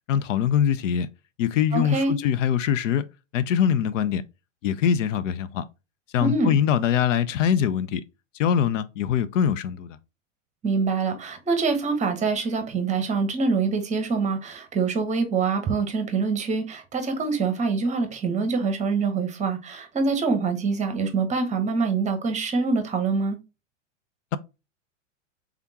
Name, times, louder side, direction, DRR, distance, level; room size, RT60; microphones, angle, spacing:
voice 1, 0.1-1.1 1.4-3.1 3.3-4.2 4.6-5.6 6.1-8.0 8.3-10.0, left 8 dB, 70° left, 0.5 m, -23 dB
voice 2, 1.7-2.2 6.2-6.6 10.6-23.4, right 4 dB, 20° right, 0.9 m, -25 dB
3.6 x 3.5 x 2.8 m
hypercardioid pair, 115°, 39 cm